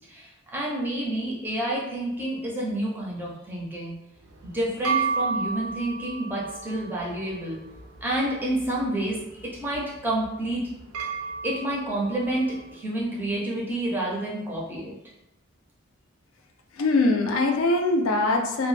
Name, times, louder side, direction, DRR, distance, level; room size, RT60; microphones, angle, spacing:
voice 1, 0.1-3.9 4.5-7.6 8.0-10.6 11.4-14.9, right 1 dB, 10° right, -5 dB, 0.5 m, -29 dB
sound 1, 4.2-12.7, right 5 dB, 75° right, 0.4 m, -34 dB
voice 2, 16.8-18.7, left 2 dB, 65° left, 2 dB, 0.4 m, -22 dB
2.1 x 2.1 x 3.1 m, 0.89 s
head